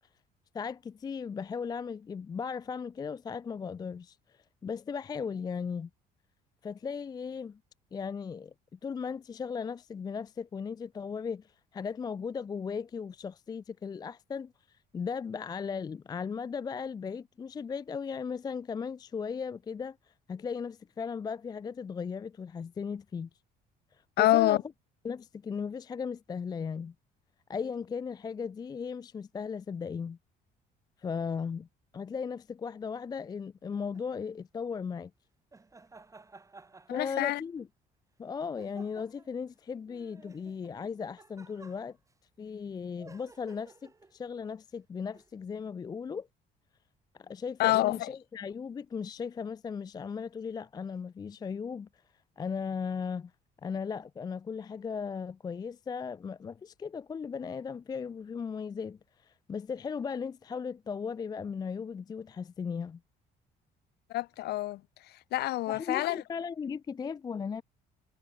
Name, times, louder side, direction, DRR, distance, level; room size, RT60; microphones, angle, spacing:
voice 1, 0.5-4.2 4.6-5.9 6.6-7.6 7.9-23.3 24.2-24.6 25.0-26.9 27.5-30.2 31.0-31.7 31.9-35.1 36.9-37.7 38.2-42.0 42.4-46.3 47.1-51.9 52.4-53.3 53.6-63.0 65.7-67.6, left 6 dB, 25° left, 0.4 m, -37 dB
voice 2, 24.2-24.6 36.9-37.4 47.6-48.1 64.1-64.8 65.3-66.2, left 16 dB, 75° left, 1.2 m, -26 dB
sound 1, 33.7-34.1 35.5-37.6 38.6-39.4 39.9-42.1 43.0-44.2 45.1-45.3, right 3 dB, 20° right, 3.1 m, -55 dB
cardioid pair, 110°, 17 cm